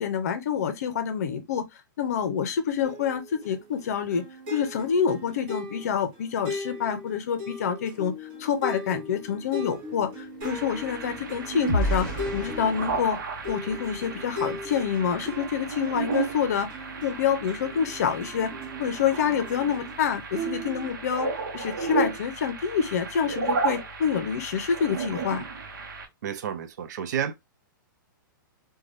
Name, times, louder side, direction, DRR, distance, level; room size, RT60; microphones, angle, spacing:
voice 1, 0.0-1.7 2.0-4.2 4.5-13.2 13.5-16.7 17.0-18.5 18.8-21.3 21.5-25.4, left 7 dB, 50° left, 0.6 m, -27 dB
sound 1, 2.8-20.0 20.3-20.9, left 1 dB, 30° right, 1.0 m, -39 dB
sound 2, 9.1-14.6 15.1-15.3 15.7-15.9, left 1 dB, 10° left, 1.2 m, -34 dB
sound 3, 10.4-26.1, right 4 dB, 75° right, 0.8 m, -34 dB
voice 2, 26.2-27.3, right 8 dB, 55° right, 0.4 m, -30 dB
3.2 x 2.3 x 2.5 m
hypercardioid pair, 175°, 11 cm